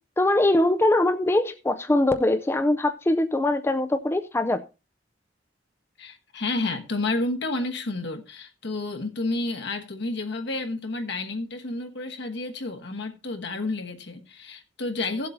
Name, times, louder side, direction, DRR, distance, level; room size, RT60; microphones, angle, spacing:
voice 1, 0.2-4.6, left 1 dB, 15° left, 0.4 m, -22 dB
voice 2, 6.0-15.3, left 2 dB, 65° left, 1.2 m, -30 dB
16.5 x 7.7 x 2.7 m
head